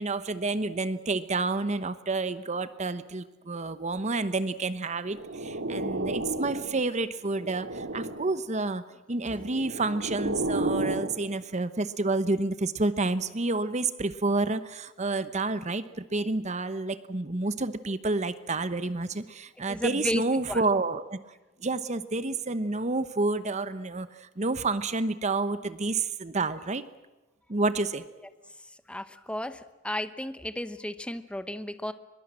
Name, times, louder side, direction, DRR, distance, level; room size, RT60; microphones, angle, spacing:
voice 1, 0.0-8.8 9.1-21.2 21.6-26.8 27.5-28.0, right 3 dB, 35° right, 13 dB, 1.0 m, -29 dB
sound 1, 5.1-6.9 7.3-8.4 9.3-11.2, right 2 dB, 70° right, 2.3 m, -32 dB
voice 2, 19.7-20.2 20.5-20.6 28.9-31.9, left 1 dB, 5° left, 11 dB, 1.0 m, -34 dB
23.0 x 22.0 x 7.6 m, 1.1 s
head